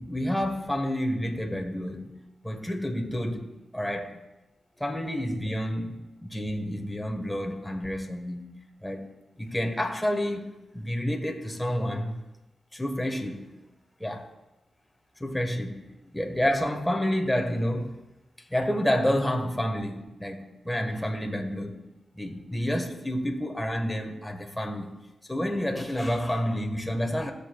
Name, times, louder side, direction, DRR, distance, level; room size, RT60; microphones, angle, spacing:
voice 1, 0.0-2.1 2.4-4.2 4.8-8.6 8.8-9.1 9.4-12.2 12.7-13.5 14.0-14.2 15.2-18.0 18.5-21.8 22.2-24.9 25.3-27.3, equal, 10° left, 1.3 m, -29 dB
17.0 x 6.6 x 2.3 m
cardioid pair, 55°, 0 cm